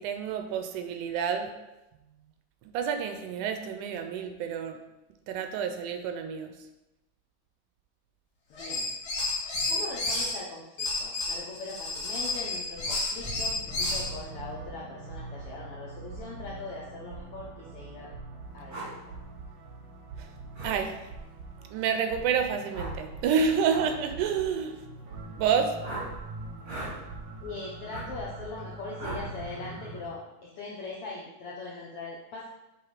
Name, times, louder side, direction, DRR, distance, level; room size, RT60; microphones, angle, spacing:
voice 1, 0.0-1.5 2.7-4.8 5.3-6.5 20.2-20.3 20.6-21.0 21.7-24.7 25.4-25.7, right 6 dB, 80° right, 6 dB, 2.0 m, -29 dB
voice 2, 8.5-8.9 9.7-18.1 18.5-18.9 27.4-32.5, left 3 dB, 75° left, -4 dB, 1.3 m, -41 dB
sound 1, 8.5-10.3 10.8-14.1, left 2 dB, 45° left, 1.6 m, -31 dB
sound 2, 13.7-30.1, right 3 dB, 60° right, 1.2 m, -44 dB
sound 3, 18.7-18.9 20.5-20.8 22.7-23.0 23.7-23.9 25.8-26.1 26.6-27.0 27.9-28.1 29.0-29.3, right 2 dB, 35° right, 1.1 m, -37 dB
7.8 x 3.6 x 4.9 m, 0.98 s
omnidirectional pair, 3.7 m